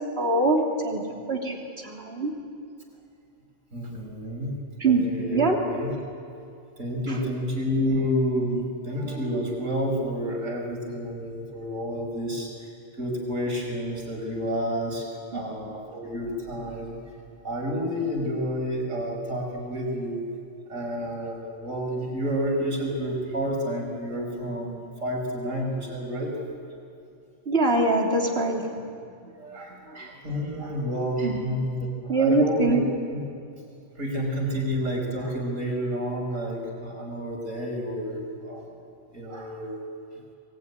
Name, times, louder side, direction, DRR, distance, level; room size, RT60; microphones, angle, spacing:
voice 1, 0.2-1.0 1.3-2.3 4.8-5.0 5.3-5.6 7.1-7.2 8.5-8.6 15.3-15.4 27.4-28.6 29.2-29.3 29.9-30.1 31.2-31.4 32.1-32.8, right 2 dB, 50° right, 0 dB, 3.4 m, -23 dB
voice 2, 3.7-4.5 4.9-5.9 6.8-12.7 13.0-15.1 15.3-17.0 17.4-20.2 20.7-26.4 29.4-32.7 34.0-38.8 39.1-39.8, equal, 75° right, 1 dB, 5.4 m, -30 dB
24.0 x 21.5 x 9.7 m, 2.5 s
omnidirectional pair, 1.4 m